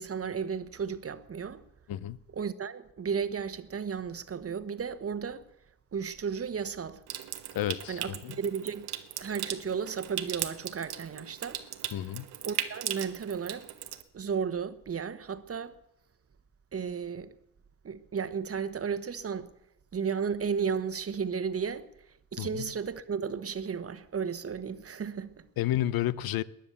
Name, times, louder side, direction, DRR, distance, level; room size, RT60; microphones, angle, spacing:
voice 1, 0.0-1.6 2.3-5.4 5.9-7.0 7.9-8.9 9.2-11.6 12.4-13.7 14.1-15.8 16.7-17.3 17.8-19.5 19.9-21.9 22.3-25.5, right 6 dB, 40° right, 1.3 m, -34 dB
Water tap faucet / Sink (filling or washing) / Trickle dribble, 7.1-14.0, right 12 dB, 85° right, 1.2 m, -38 dB
voice 2, 7.5-8.3 11.9-12.3 22.4-22.5 25.6-26.4, left 13 dB, 70° left, 0.7 m, -30 dB
20.0 x 10.5 x 6.9 m
supercardioid pair, 70°, 37 cm